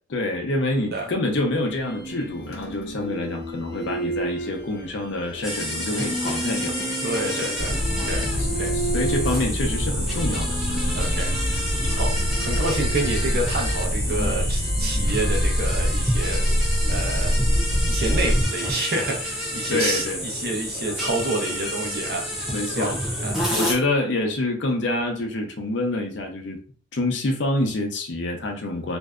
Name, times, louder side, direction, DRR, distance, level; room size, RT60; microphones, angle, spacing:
voice 1, 0.1-6.8 8.0-8.5 8.9-11.0 19.7-20.2 22.5-23.0 23.5-26.6 26.9-29.0, left 2 dB, 90° left, 0.6 m, -27 dB
sound 1, 1.5-16.6, right 2 dB, 70° left, 0.9 m, -34 dB
sound 2, 5.4-23.7, equal, ahead, 0.5 m, -29 dB
voice 2, 7.0-8.3 8.6-8.8 10.9-17.3 17.8-23.0 23.2-23.4, right 2 dB, 55° right, 0.7 m, -29 dB
sound 3, 7.6-18.4, equal, 85° right, 1.1 m, -25 dB
2.6 x 2.1 x 2.3 m
head